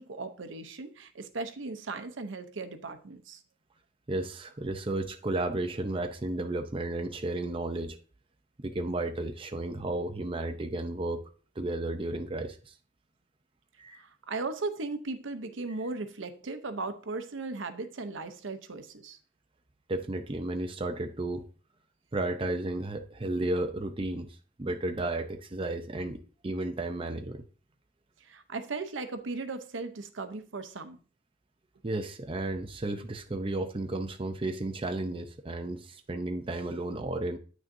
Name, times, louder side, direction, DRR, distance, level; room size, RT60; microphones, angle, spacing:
voice 1, 0.0-3.4 14.0-19.2 28.2-31.0, right 3 dB, 80° right, 0.7 m, -37 dB
voice 2, 4.1-8.0 8.6-11.2 11.6-12.7 13.8-14.0 19.9-21.5 22.1-27.4 31.8-37.4, right 2 dB, 30° right, 0.6 m, -33 dB
8.9 x 6.2 x 2.6 m
head